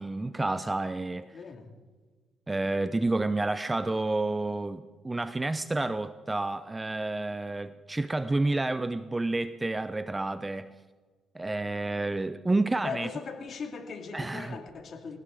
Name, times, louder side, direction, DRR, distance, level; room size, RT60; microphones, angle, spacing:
voice 1, 0.0-1.3 2.5-10.7 11.3-13.1 14.1-14.6, right 2 dB, 20° right, 13 dB, 0.6 m, -30 dB
voice 2, 1.3-1.7 12.8-15.2, left 5 dB, 55° left, 4 dB, 2.5 m, -39 dB
19.5 x 18.5 x 3.8 m, 1.4 s
cardioid pair, 90°, 0 cm